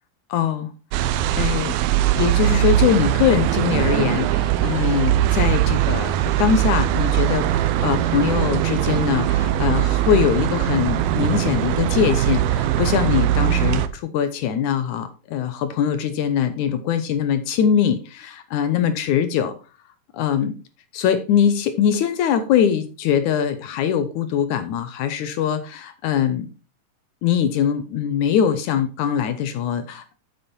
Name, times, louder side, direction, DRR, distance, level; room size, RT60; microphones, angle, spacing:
voice 1, 0.3-0.7 1.4-1.8 2.2-19.5 20.1-20.5 20.9-26.5 27.2-30.2, left 8 dB, 75° left, 10 dB, 2.0 m, -22 dB
sound 1, 0.9-13.9, right 12 dB, 90° right, 2.5 m, -20 dB
8.5 x 7.2 x 4.3 m, 0.33 s
omnidirectional pair, 4.1 m